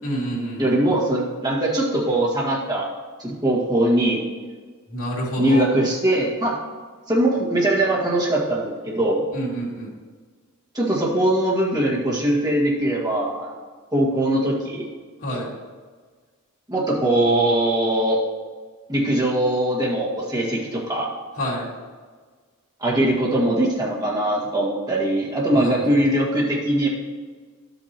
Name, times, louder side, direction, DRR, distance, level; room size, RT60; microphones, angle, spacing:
voice 1, 0.0-0.8 4.9-5.7 9.3-9.9 15.2-15.5 21.4-21.7 25.5-25.8, right 1 dB, 70° left, -5 dB, 2.7 m, -28 dB
voice 2, 0.6-2.9 3.2-4.2 5.4-6.6 7.1-9.2 10.8-13.5 13.9-14.9 16.7-18.2 18.9-21.1 22.8-26.9, right 1 dB, 20° right, -5 dB, 1.8 m, -21 dB
12.0 x 8.3 x 3.0 m, 1.5 s
head